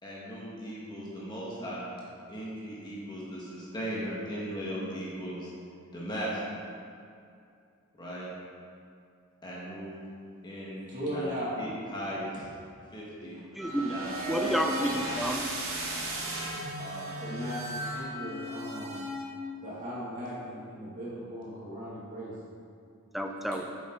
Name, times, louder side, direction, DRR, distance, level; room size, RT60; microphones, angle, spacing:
voice 1, 0.0-2.0 2.3-5.5 5.9-6.6 8.0-8.3 9.4-10.0 10.4-12.4 12.9-13.4 13.9-14.9 16.8-17.3, equal, 20° left, -6 dB, 1.6 m, -38 dB
voice 2, 10.8-11.7 16.5-16.6 17.2-19.0 19.6-22.3 23.5-23.6, equal, 40° right, -9 dB, 2.4 m, -37 dB
voice 3, 13.5-14.0 14.3-15.4 23.1-23.6, equal, ahead, 3 dB, 0.5 m, -30 dB
sound 1, 13.6-19.6, right 1 dB, 70° right, 1.6 m, -35 dB
9.3 x 7.7 x 3.9 m, 2.4 s
head